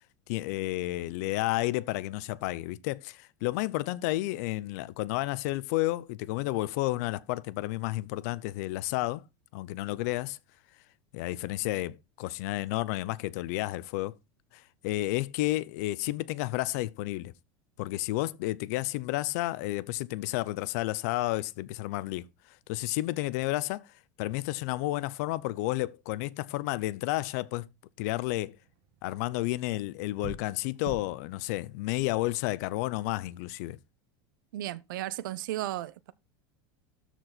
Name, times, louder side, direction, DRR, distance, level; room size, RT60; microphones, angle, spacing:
voice 1, 0.3-9.2 9.5-10.4 11.1-14.2 14.5-17.3 17.8-22.3 22.7-23.9 24.2-27.7 28.0-28.6 29.0-33.8, left 18 dB, 55° left, 0.6 m, -31 dB
sound 1, 28.3-33.2, right 4 dB, 50° right, 1.7 m, -48 dB
voice 2, 34.5-36.1, right 14 dB, 90° right, 0.7 m, -35 dB
13.0 x 4.6 x 4.1 m
supercardioid pair, 170°, 10 cm